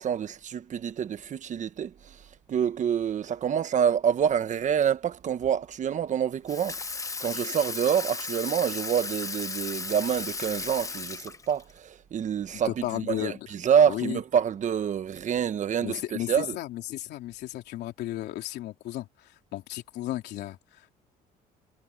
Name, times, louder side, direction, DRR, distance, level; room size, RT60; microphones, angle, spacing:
voice 1, 0.0-2.2 2.5-6.8 7.2-16.5, right 8 dB, 45° right, 1.4 m, -27 dB
Water tap faucet / Sink (filling or washing), 6.5-11.7, left 4 dB, 20° left, 0.9 m, -35 dB
voice 2, 12.6-13.5 13.9-14.2 15.8-20.9, left 14 dB, 80° left, 3.3 m, -34 dB
cardioid pair, 110°, 17 cm